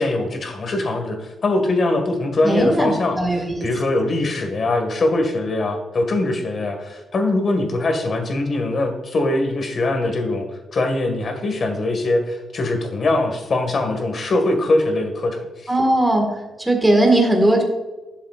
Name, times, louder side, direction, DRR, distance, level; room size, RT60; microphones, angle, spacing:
voice 1, 0.0-15.7, left 2 dB, 45° left, 5 dB, 1.8 m, -22 dB
voice 2, 2.4-3.7 15.7-16.3 16.6-17.6, right 1 dB, 10° right, 2 dB, 1.8 m, -18 dB
11.0 x 7.2 x 2.5 m, 1.2 s
cardioid pair, 115°, 0 cm